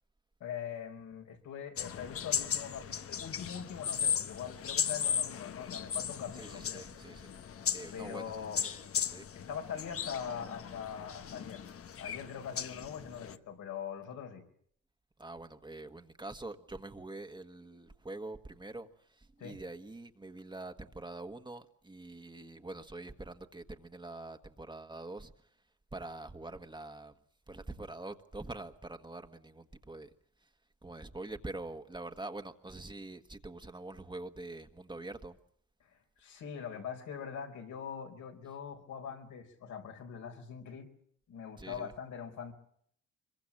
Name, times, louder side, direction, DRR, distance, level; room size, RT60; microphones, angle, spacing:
voice 1, 0.4-6.8 7.9-8.6 8.9-9.1 9.3-11.6 12.0-14.4 19.4-19.6 35.8-40.9 41.3-42.5, left 7 dB, 80° left, 4.6 m, -42 dB
sound 1, 1.8-13.4, left 8 dB, 50° left, 1.1 m, -37 dB
voice 2, 6.3-7.3 7.7-8.2 8.6-8.8 9.1-9.3 15.2-25.3 25.9-27.1 27.5-30.1 30.4-30.5 30.8-35.4 41.6-41.9, right 2 dB, 15° right, 1.5 m, -45 dB
25.0 x 23.0 x 7.3 m
cardioid pair, 90°, 30 cm